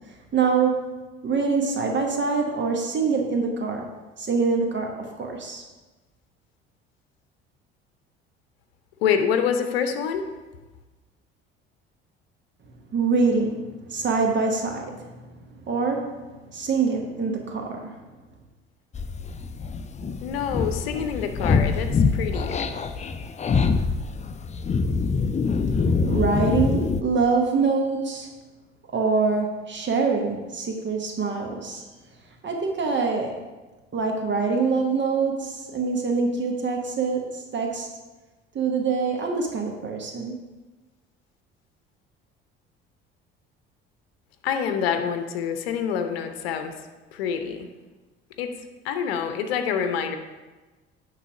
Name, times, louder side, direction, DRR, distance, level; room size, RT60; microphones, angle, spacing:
voice 1, 0.3-0.9 1.2-3.9 4.2-5.6 12.9-15.1 15.6-17.9 26.0-28.3 28.9-31.8 32.4-33.4 33.9-37.9 38.5-40.4, right 4 dB, 35° right, 2 dB, 1.2 m, -25 dB
voice 2, 9.0-10.2 20.2-22.7 44.4-46.7 47.1-47.7 48.4-48.5 48.8-50.2, left 7 dB, 75° left, 7 dB, 0.7 m, -26 dB
sound 1, 18.9-27.0, left 4 dB, 25° left, 0.5 m, -24 dB
9.8 x 3.4 x 5.8 m, 1.2 s
figure-of-eight pair, 55°, 31 cm